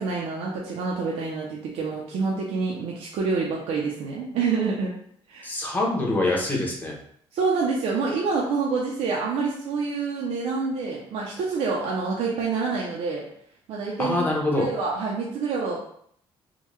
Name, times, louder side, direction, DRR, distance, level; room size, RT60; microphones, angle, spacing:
voice 1, 0.0-4.9 5.3-5.5 7.3-13.3 13.7-14.2 14.5-15.8, right 4 dB, 80° right, -3 dB, 0.6 m, -27 dB
voice 2, 5.4-6.9 14.0-14.7, left 2 dB, 15° left, -2 dB, 0.9 m, -25 dB
3.6 x 2.3 x 3.1 m, 0.66 s
cardioid pair, 130°, 10 cm